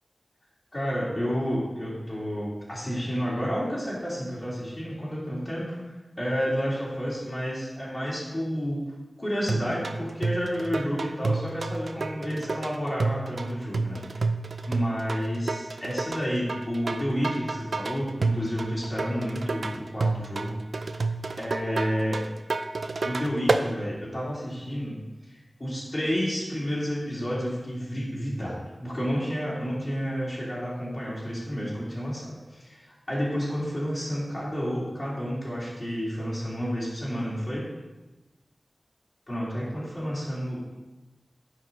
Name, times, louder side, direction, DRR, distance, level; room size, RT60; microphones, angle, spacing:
voice 1, 0.7-5.8 6.2-8.8 9.2-14.0 14.6-20.5 21.4-22.2 23.0-25.0 25.3-32.8 33.1-37.6 39.3-40.8, equal, 25° left, -8 dB, 2.9 m, -30 dB
sound 1, 9.5-23.7, right 3 dB, 80° right, 0.4 m, -30 dB
10.5 x 5.0 x 4.0 m, 1.1 s
wide cardioid pair, 85°, 0 cm